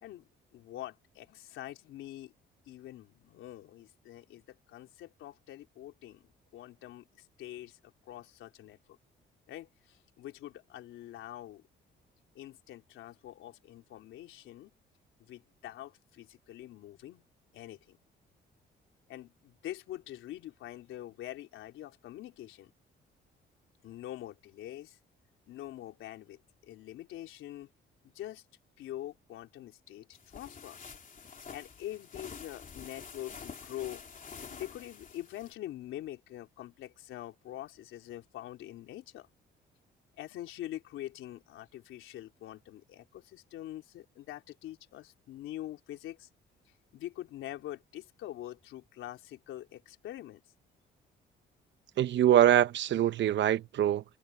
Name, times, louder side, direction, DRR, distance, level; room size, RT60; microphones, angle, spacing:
voice 1, 0.0-2.3 2.7-9.0 9.5-11.6 12.3-14.7 15.2-17.2 17.5-18.0 19.1-22.7 23.8-25.0 25.5-27.7 28.0-28.4 28.8-30.8 31.5-34.0 34.5-39.3 40.2-46.3 46.9-50.4, left 13 dB, 85° left, 3.8 m, -45 dB
sound 1, 30.1-35.5, left 6 dB, 40° left, 3.4 m, -48 dB
voice 2, 52.0-54.0, right 11 dB, 65° right, 0.9 m, -24 dB
cardioid pair, 90°, 20 cm